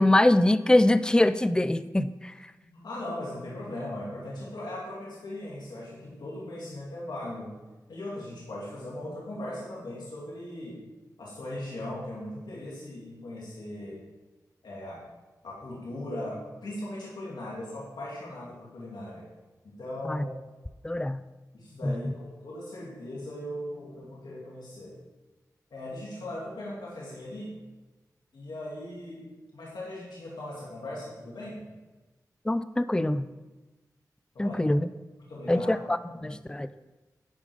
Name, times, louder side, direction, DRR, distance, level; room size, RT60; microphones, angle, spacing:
voice 1, 0.0-2.5 20.0-20.2 20.8-21.2 21.8-22.1 32.5-33.3 34.4-34.9 35.5-36.7, left 1 dB, 10° left, 13 dB, 0.4 m, -24 dB
voice 2, 2.6-7.5 7.9-10.8 11.2-14.0 14.6-15.0 15.4-19.3 19.6-20.3 21.5-24.9 25.7-27.5 28.3-29.3 29.5-31.7 34.3-34.6 35.2-35.8 36.0-36.3, left 1 dB, 85° left, -6 dB, 2.6 m, -39 dB
10.5 x 5.1 x 5.1 m, 1.2 s
cardioid pair, 40°, 7 cm